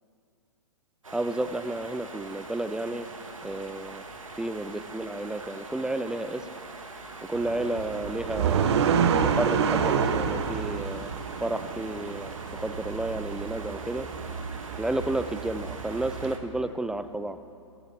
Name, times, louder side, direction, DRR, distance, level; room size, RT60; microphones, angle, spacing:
sound 1, 1.0-16.4, right 3 dB, 85° right, 1.6 m, -43 dB
voice 1, 1.1-3.1 3.4-4.0 4.4-6.4 7.3-8.9 9.2-11.1 11.4-14.1 14.8-17.4, right 2 dB, 5° right, 11 dB, 0.3 m, -31 dB
sound 2, 7.3-16.3, right 6 dB, 55° right, 1.1 m, -29 dB
22.5 x 10.5 x 4.7 m, 2.3 s
figure-of-eight pair, 115°, 17 cm